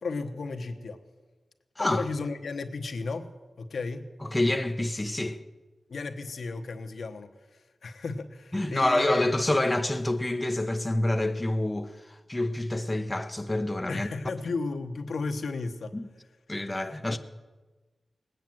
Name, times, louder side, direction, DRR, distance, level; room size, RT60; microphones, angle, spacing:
voice 1, 0.0-1.0 1.8-3.3 3.6-4.1 5.9-9.3 13.9-15.9 17.1-17.2, left 3 dB, 75° left, 1.1 m, -34 dB
voice 2, 4.2-5.4 8.5-14.1 15.9-16.1 16.5-17.2, left 1 dB, 15° left, 0.8 m, -27 dB
19.5 x 9.1 x 7.7 m
wide cardioid pair, 100°, 0 cm